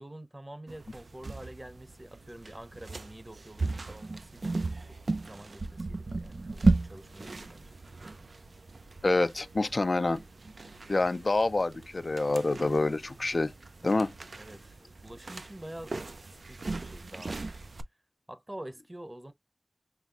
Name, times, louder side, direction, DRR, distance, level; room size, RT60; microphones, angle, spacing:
voice 1, 0.0-4.6 4.9-5.0 5.2-7.8 14.4-14.8 15.0-15.9 16.4-17.4 18.3-19.3, right 1 dB, 30° right, 0.8 m, -46 dB
sound 1, 0.7-17.8, right 3 dB, 85° right, 0.4 m, -35 dB
voice 2, 9.0-10.2 10.9-13.5 13.8-14.1, left 2 dB, 70° left, 0.3 m, -27 dB
5.5 x 2.0 x 2.3 m
wide cardioid pair, 45°, 0 cm